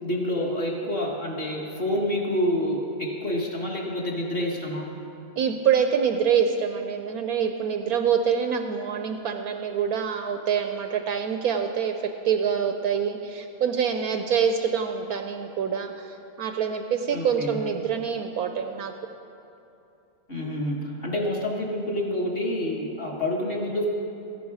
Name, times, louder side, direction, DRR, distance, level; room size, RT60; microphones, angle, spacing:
voice 1, 0.0-4.9 17.1-17.6 20.3-23.9, left 1 dB, 35° left, -2 dB, 1.5 m, -28 dB
voice 2, 5.4-11.9 12.2-18.9, right 7 dB, 70° right, 6 dB, 0.9 m, -25 dB
14.5 x 10.5 x 4.8 m, 2.8 s
omnidirectional pair, 1.8 m